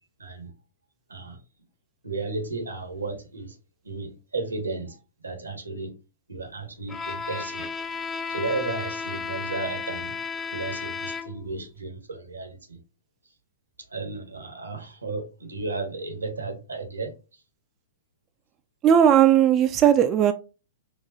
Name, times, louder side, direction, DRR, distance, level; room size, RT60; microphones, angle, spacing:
voice 1, 0.2-0.5 1.1-1.4 2.0-3.6 3.8-5.9 6.3-7.7 8.3-10.2 10.5-12.8 13.9-17.4, right 3 dB, 90° right, 1.4 m, -34 dB
Bowed string instrument, 6.9-11.6, left 5 dB, 20° left, 0.6 m, -33 dB
voice 2, 18.8-20.3, right 9 dB, 30° right, 0.4 m, -17 dB
4.8 x 2.5 x 2.8 m
hypercardioid pair, 110°, 0 cm